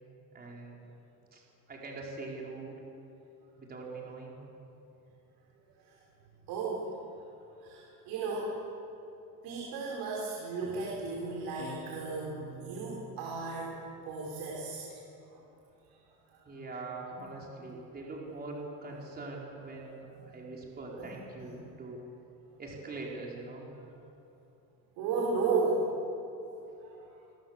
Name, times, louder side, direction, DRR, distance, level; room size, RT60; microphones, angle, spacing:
voice 1, 0.3-0.8 1.3-1.4 1.7-2.7 3.6-4.4 16.4-20.0 20.3-22.0 22.6-23.7, right 3 dB, 25° right, -2 dB, 4.6 m, -42 dB
voice 2, 6.5-6.9 7.6-8.6 9.4-13.7 14.0-14.8 15.3-15.4 16.3-16.4 17.2-17.3 19.7-20.4 21.0-21.1 25.0-25.9 26.8-27.3, right 4 dB, 80° right, -3 dB, 5.5 m, -34 dB
sound 1, 11.6-14.2, right 2 dB, 40° left, 4.7 m, -48 dB
27.5 x 22.5 x 7.5 m, 2.8 s
cardioid pair, 155°, 39 cm